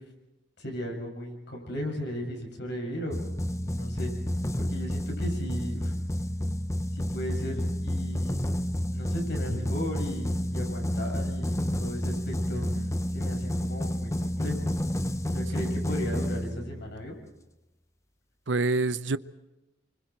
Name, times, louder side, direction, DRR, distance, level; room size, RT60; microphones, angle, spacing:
voice 1, 0.6-3.2 3.6-4.1 4.6-5.9 6.9-8.5 8.9-12.7 13.1-14.7 15.2-17.1, equal, 65° left, 7.1 m, -36 dB
sound 1, 3.1-17.0, equal, 15° left, 0.9 m, -30 dB
voice 2, 12.5-12.9 15.6-15.7 18.5-19.2, right 3 dB, 70° right, 0.8 m, -28 dB
29.5 x 25.0 x 4.6 m
head